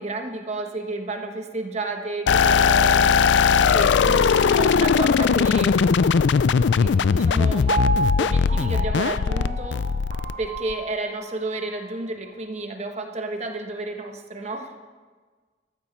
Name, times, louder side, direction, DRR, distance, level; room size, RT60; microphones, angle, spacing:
voice 1, 0.0-3.2 3.7-5.8 6.7-7.8 8.2-9.9 10.4-14.8, right 2 dB, 40° right, 5 dB, 1.2 m, -31 dB
sound 1, 2.3-10.7, left 6 dB, 80° left, 0.4 m, -19 dB
Piano, 7.7-11.8 12.3-12.4, right 2 dB, 60° right, 2.7 m, -30 dB
14.0 x 13.0 x 4.4 m, 1.4 s
head